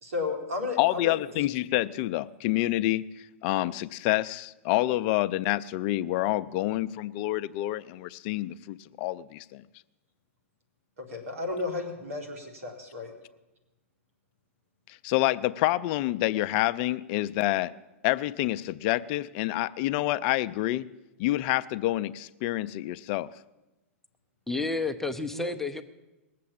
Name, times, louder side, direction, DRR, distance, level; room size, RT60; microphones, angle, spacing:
voice 1, 0.0-1.4 11.0-13.1 25.3-25.5, left 3 dB, 80° right, 4 dB, 3.7 m, -34 dB
voice 2, 0.8-3.0 3.4-9.6 15.0-17.7 18.0-20.9 21.2-23.3, left 16 dB, 45° left, 15 dB, 0.5 m, -27 dB
voice 3, 24.5-25.8, left 3 dB, 5° left, 5 dB, 0.7 m, -30 dB
19.5 x 7.6 x 8.6 m, 1.0 s
hypercardioid pair, 120°, 8 cm